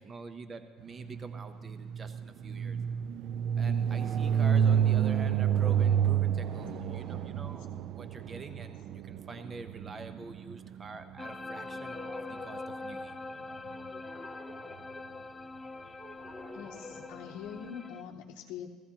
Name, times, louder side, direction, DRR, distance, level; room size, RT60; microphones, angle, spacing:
voice 1, 0.0-2.8 3.6-13.2, right 3 dB, 30° right, 9 dB, 0.7 m, -45 dB
sound 1, 1.0-11.0, right 8 dB, 60° right, 0.3 m, -29 dB
voice 2, 6.8-7.8 16.5-18.7, left 8 dB, 75° left, -1 dB, 0.8 m, -45 dB
sound 2, 11.2-18.0, left 3 dB, 15° left, 0.3 m, -43 dB
sound 3, 11.2-18.1, left 2 dB, 10° right, 1.1 m, -50 dB
15.5 x 15.5 x 2.9 m, 1.5 s
cardioid pair, 110°, 0 cm